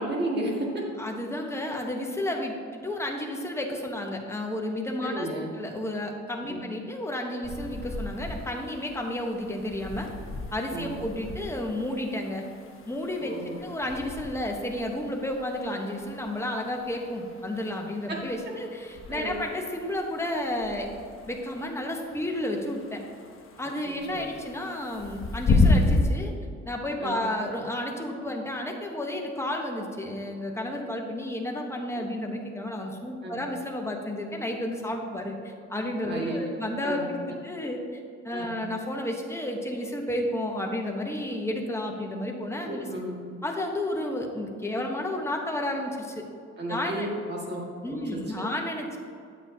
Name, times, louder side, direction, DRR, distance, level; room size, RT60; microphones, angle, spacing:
voice 1, 0.0-0.9 5.0-5.5 6.5-6.6 10.7-11.0 13.2-13.6 18.1-18.2 19.1-19.3 23.9-24.3 27.0-27.2 33.2-33.4 36.0-37.1 38.3-38.6 42.7-43.2 46.6-47.6 47.9-48.5, right 1 dB, 35° right, -2 dB, 1.9 m, -33 dB
voice 2, 1.0-5.3 5.5-10.1 10.5-12.4 12.9-20.9 21.3-23.0 23.6-26.3 26.6-38.0 38.2-42.9 43.4-46.1 46.7-47.1 47.8-49.0, left 1 dB, 10° left, 1 dB, 1.0 m, -32 dB
sound 1, 7.4-26.0, left 3 dB, 45° left, 1.0 m, -32 dB
9.6 x 8.0 x 2.8 m, 2.3 s
cardioid pair, 115°, 29 cm